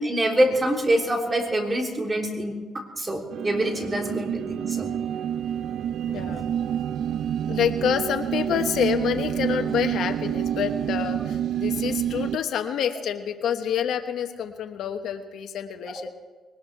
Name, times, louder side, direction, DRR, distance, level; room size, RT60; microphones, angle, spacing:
voice 1, 0.0-4.9, right 1 dB, 25° right, 1 dB, 3.2 m, -25 dB
sound 1, 3.3-12.4, right 9 dB, 70° right, 0.5 m, -28 dB
voice 2, 6.1-6.4 7.5-16.1, left 8 dB, 75° left, 7 dB, 1.1 m, -27 dB
21.5 x 19.0 x 3.4 m, 1.4 s
cardioid pair, 90°, 0 cm